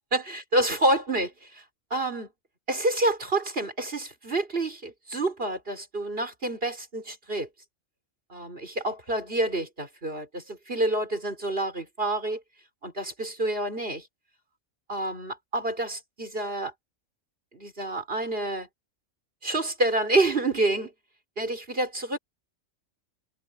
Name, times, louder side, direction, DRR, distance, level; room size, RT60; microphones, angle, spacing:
voice 1, 0.1-1.6 1.9-2.3 2.7-7.5 8.3-12.4 12.8-14.0 14.9-16.7 17.5-18.7 19.4-20.9 21.4-22.2, right 2 dB, 45° right, 4.8 m, -28 dB
omnidirectional pair, 1.3 m